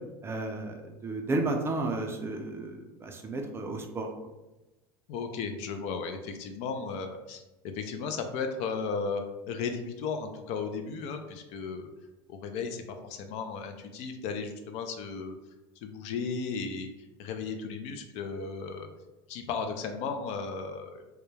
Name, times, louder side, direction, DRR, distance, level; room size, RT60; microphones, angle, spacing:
voice 1, 0.2-4.1, right 2 dB, 20° right, 2 dB, 0.4 m, -33 dB
voice 2, 5.1-7.4 7.7-11.9 12.3-15.4 15.8-16.9 17.2-18.9 19.3-21.0, left 5 dB, 55° left, 6 dB, 0.4 m, -35 dB
2.2 x 2.1 x 3.1 m, 1.0 s
supercardioid pair, 110°, 13 cm